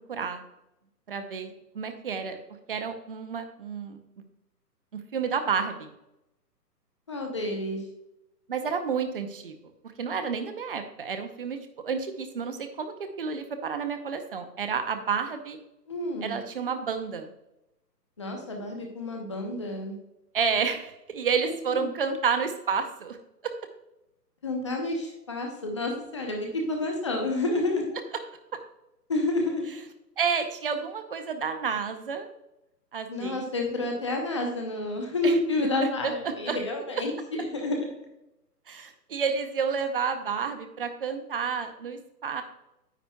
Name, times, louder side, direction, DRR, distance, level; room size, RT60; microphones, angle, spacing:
voice 1, 0.1-0.4 1.1-2.4 2.7-4.0 4.9-5.9 8.5-9.5 10.0-11.6 11.8-15.6 16.2-17.3 20.3-23.2 23.4-23.5 30.2-32.3 32.9-33.5 35.2-35.3 36.0-36.6 38.7-42.4, right 6 dB, 35° right, 7 dB, 0.7 m, -30 dB
voice 2, 7.1-7.8 15.9-16.4 18.2-19.9 21.4-21.9 24.4-28.0 29.1-29.8 33.1-37.9, left 2 dB, 20° left, 1 dB, 0.6 m, -29 dB
9.9 x 7.7 x 2.3 m, 0.90 s
hypercardioid pair, 160°, 50 cm